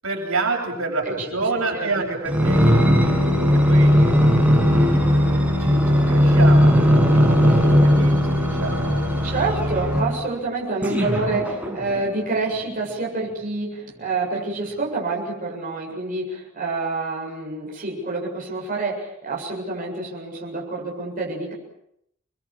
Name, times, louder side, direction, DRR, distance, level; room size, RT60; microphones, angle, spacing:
voice 1, 0.0-4.3 4.7-5.3 5.6-6.8 7.1-9.5 10.7-10.8 11.2-11.4, right 3 dB, 70° right, 1 dB, 7.9 m, -29 dB
voice 2, 1.5-2.1 3.8-4.0 9.2-21.5, right 3 dB, 40° right, -2 dB, 7.6 m, -27 dB
sound 1, 2.3-10.2 10.8-12.1 12.7-12.8, equal, 5° right, 7.5 m, -17 dB
29.5 x 22.0 x 7.5 m, 0.75 s
head